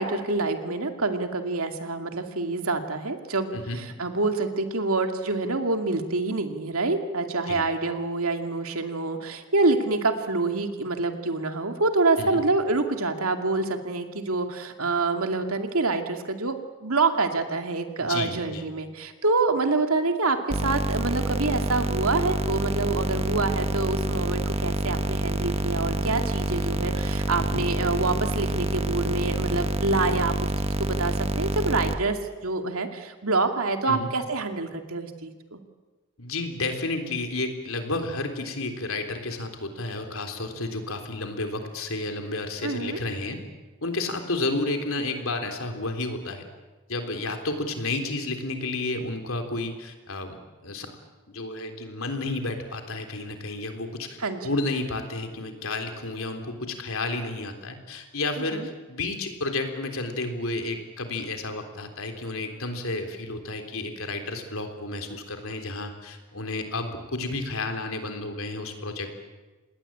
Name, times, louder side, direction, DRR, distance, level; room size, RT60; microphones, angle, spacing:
voice 1, 0.0-16.5 16.8-30.5 30.8-32.2 32.4-35.6 42.6-43.0 54.2-54.5 58.4-58.7, right 3 dB, 75° right, 6 dB, 2.5 m, -26 dB
voice 2, 18.1-18.6 27.4-27.6 33.9-34.1 36.2-43.4 43.8-46.4 46.9-50.4 50.6-50.9 51.3-54.2 54.4-69.1, left 2 dB, 65° left, 5 dB, 3.7 m, -31 dB
sound 1, 20.5-32.0, right 1 dB, 25° right, 1.2 m, -27 dB
27.5 x 20.5 x 8.8 m, 1.2 s
head